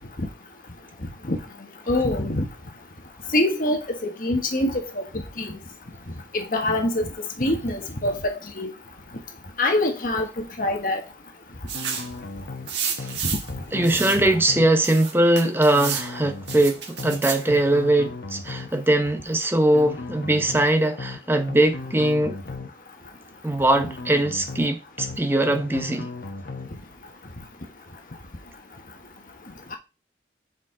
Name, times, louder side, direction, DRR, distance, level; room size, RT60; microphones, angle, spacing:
voice 1, 1.9-2.5 3.3-3.8 4.2-5.0 5.4-5.5 6.3-7.1 7.4-8.7 9.6-11.0 13.2-13.3, left 1 dB, 50° left, 1.3 m, -24 dB
sound 1, 11.7-12.7 13.0-13.2 13.5-14.7 15.7-16.7 17.0-17.2 17.5-18.7 19.7-20.7 21.0-21.2 21.5-22.7 23.7-24.7 25.0-25.2 25.5-26.7, left 3 dB, 65° left, 1.1 m, -36 dB
sound 2, 11.7-12.1 12.7-13.5 13.8-14.2 14.8-16.1 16.5-17.4, right 7 dB, 85° right, 1.4 m, -30 dB
voice 2, 13.7-22.4 23.4-26.1, right 1 dB, 15° right, 0.8 m, -21 dB
6.2 x 5.1 x 3.8 m
head